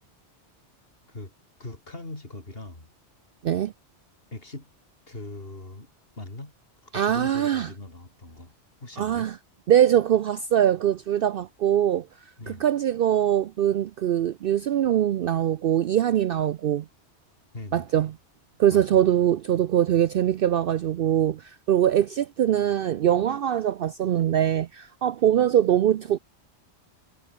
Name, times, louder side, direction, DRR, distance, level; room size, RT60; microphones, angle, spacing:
voice 1, 1.6-2.9 4.3-4.7 5.1-5.9 6.2-6.5 6.8-8.5 8.8-9.3 12.4-12.6 17.5-18.0 18.7-19.0, left 2 dB, 55° left, 4.3 m, -40 dB
voice 2, 6.9-7.7 9.0-9.3 9.7-12.1 12.5-16.9 17.7-18.1 18.6-26.2, right 10 dB, 60° right, 0.7 m, -22 dB
omnidirectional pair, 1.2 m